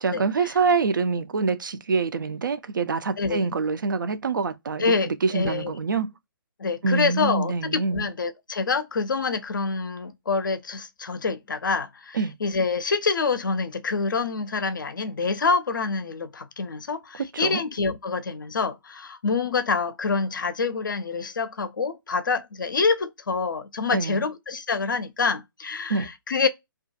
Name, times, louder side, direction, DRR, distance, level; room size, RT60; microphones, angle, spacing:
voice 1, 0.0-6.1 6.8-8.1 12.1-12.3 17.4-17.6 23.9-24.2 25.9-26.1, right 4 dB, 60° right, 0.4 m, -25 dB
voice 2, 3.2-3.5 4.8-5.7 6.6-26.5, left 4 dB, 60° left, 0.4 m, -26 dB
2.3 x 2.2 x 2.5 m
figure-of-eight pair, 130°, 12 cm